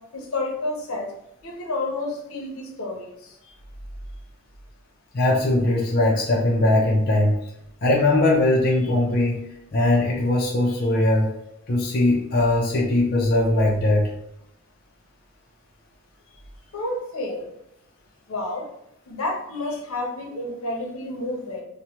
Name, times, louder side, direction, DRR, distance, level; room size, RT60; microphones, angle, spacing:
voice 1, 0.1-1.1 1.4-3.4 16.7-17.5 18.3-18.7 19.1-21.6, left 2 dB, 80° left, -1 dB, 0.8 m, -30 dB
voice 2, 5.1-7.4 7.8-9.4 9.7-11.3 11.7-14.1, left 1 dB, 45° left, -3 dB, 0.5 m, -20 dB
3.0 x 2.1 x 2.8 m, 0.82 s
head